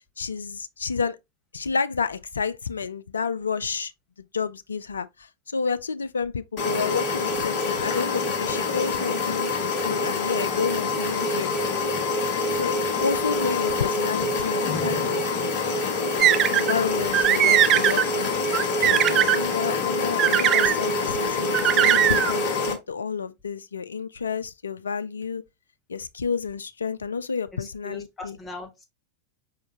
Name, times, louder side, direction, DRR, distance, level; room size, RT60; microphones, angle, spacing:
voice 1, 0.2-1.2 1.5-3.9 4.2-11.6 12.5-15.3 16.5-18.4 18.8-25.4 25.9-28.4, left 5 dB, 70° left, 0.3 m, -30 dB
sound 1, 6.6-22.7, left 3 dB, 45° left, 1.1 m, -26 dB
sound 2, 16.2-16.7 17.1-18.0 18.5-19.4 20.2-20.8 21.5-22.3, right 11 dB, 30° right, 0.3 m, -19 dB
voice 2, 27.5-28.8, left 3 dB, 15° left, 1.1 m, -40 dB
5.0 x 3.5 x 2.9 m
figure-of-eight pair, 90°, 0 cm